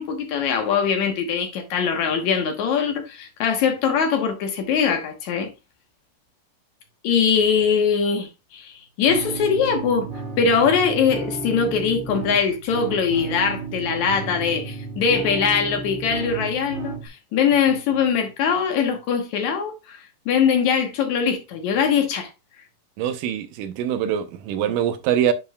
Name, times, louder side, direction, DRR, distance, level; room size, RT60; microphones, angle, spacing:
voice 1, 0.0-5.5 7.0-10.1 10.4-22.3, left 6 dB, 65° left, 2.3 m, -22 dB
sound 1, 9.1-17.1, right 4 dB, 55° right, 1.3 m, -33 dB
voice 2, 23.0-25.3, right 10 dB, 80° right, 2.3 m, -23 dB
9.5 x 5.3 x 2.2 m
omnidirectional pair, 3.8 m